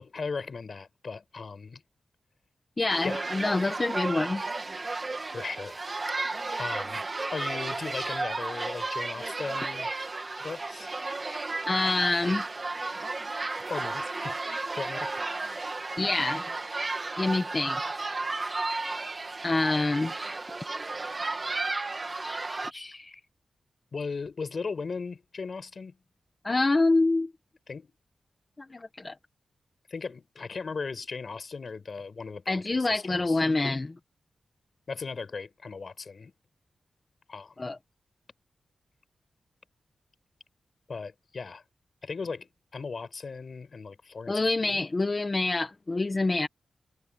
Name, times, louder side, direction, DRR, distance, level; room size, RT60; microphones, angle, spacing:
voice 1, 0.0-1.8 3.0-3.2 5.3-5.9 6.6-7.0 7.3-10.0 10.4-10.9 13.7-15.6 23.9-26.0 27.7-27.9 29.9-33.4 34.9-36.3 37.3-37.7 40.9-41.6 42.0-44.9, left 4 dB, 45° left, 4.9 m, -37 dB
voice 2, 2.8-4.4 11.7-12.4 16.0-16.4 17.2-17.8 19.4-20.1 22.2-23.2 26.4-27.3 28.6-29.1 32.5-33.9 37.6-37.8 44.3-46.5, left 2 dB, 25° left, 1.4 m, -27 dB
sound 1, 2.9-22.7, right 3 dB, 30° right, 2.3 m, -33 dB
wide cardioid pair, 155°, 0 cm